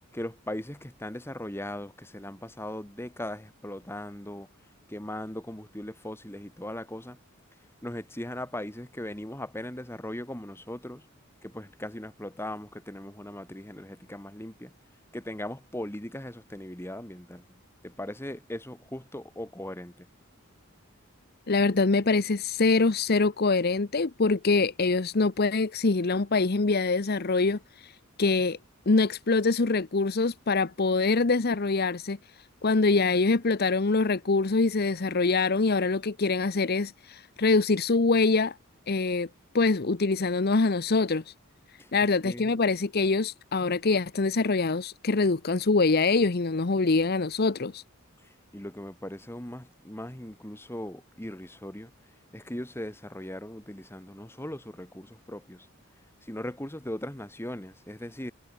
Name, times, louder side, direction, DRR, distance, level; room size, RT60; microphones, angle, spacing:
voice 1, 0.1-4.5 4.9-7.2 7.8-11.1 11.4-14.7 15.1-20.1 41.8-41.9 42.2-42.5 48.2-51.9 52.3-55.7 56.2-58.3, left 1 dB, 10° left, 2.2 m, -39 dB
voice 2, 21.5-27.9 28.2-28.6 28.9-32.2 32.6-38.6 38.9-39.3 39.5-41.3 41.9-47.8, left 3 dB, 45° left, 0.8 m, -24 dB
head